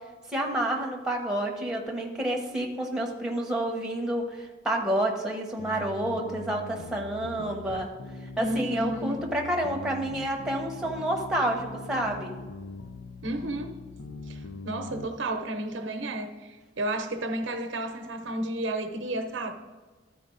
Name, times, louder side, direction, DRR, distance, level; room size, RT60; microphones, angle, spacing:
voice 1, 0.3-7.9 8.4-12.3, right 1 dB, 5° right, 0 dB, 0.9 m, -29 dB
sound 1, 5.6-15.1, left 3 dB, 85° left, 0.5 m, -42 dB
voice 2, 8.4-9.2 13.2-13.8 14.3-19.5, right 1 dB, 80° right, 6 dB, 0.8 m, -32 dB
13.0 x 4.5 x 3.8 m, 1.3 s
head